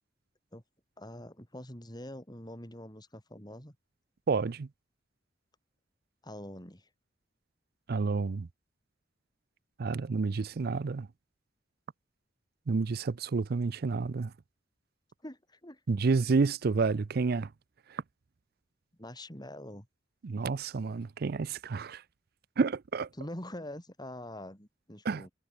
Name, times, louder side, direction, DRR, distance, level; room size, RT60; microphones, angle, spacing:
voice 1, 1.0-3.8 6.2-6.9 15.2-15.8 19.0-19.9 23.1-25.3, left 1 dB, 20° left, 6.5 m, -44 dB
voice 2, 4.3-4.7 7.9-8.5 9.8-11.1 12.7-14.3 15.9-17.5 20.2-22.0 22.6-23.1 25.1-25.2, right 4 dB, 55° right, 0.5 m, -29 dB
head